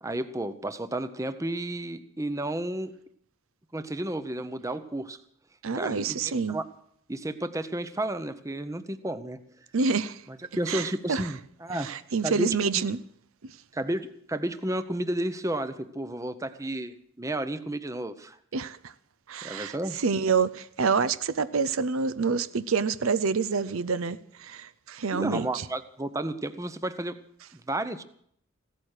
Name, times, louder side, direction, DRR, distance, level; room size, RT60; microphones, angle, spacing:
voice 1, 0.0-2.9 3.7-5.2 5.7-6.7 7.1-9.4 10.3-11.9 12.2-12.9 13.7-18.4 19.4-20.0 25.1-27.2 27.5-28.0, right 1 dB, 15° right, 0.7 m, -32 dB
voice 2, 5.6-6.6 9.7-10.2 10.7-11.2 11.7-13.0 18.5-18.9 19.3-25.6, right 5 dB, 70° right, 0.6 m, -27 dB
16.5 x 13.5 x 6.5 m
head